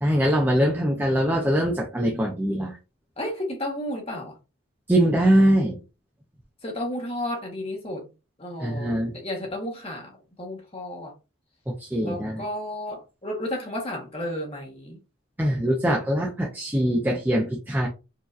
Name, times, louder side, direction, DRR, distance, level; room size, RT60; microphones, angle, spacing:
voice 1, 0.0-2.8 4.9-5.8 8.6-9.1 11.7-12.4 15.4-17.9, equal, 10° right, 0.6 m, -22 dB
voice 2, 3.2-4.4 6.6-8.1 8.4-11.1 12.0-15.0, left 1 dB, 30° left, 1.2 m, -32 dB
4.7 x 2.8 x 2.5 m
head